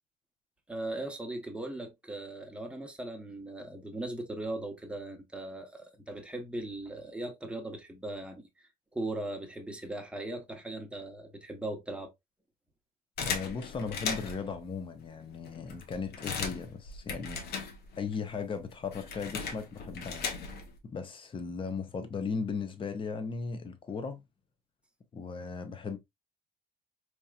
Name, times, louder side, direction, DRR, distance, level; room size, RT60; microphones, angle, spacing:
voice 1, 0.7-8.5 8.9-12.1, right 2 dB, 5° right, 1.0 m, -39 dB
sound 1, 13.2-14.5 15.1-15.2 15.5-18.1 18.4-20.8, left 5 dB, 70° left, 0.9 m, -37 dB
voice 2, 13.3-17.4 18.0-20.2 20.8-24.2 25.1-26.0, left 5 dB, 30° left, 0.7 m, -37 dB
4.5 x 2.9 x 2.3 m
cardioid pair, 110°, 17 cm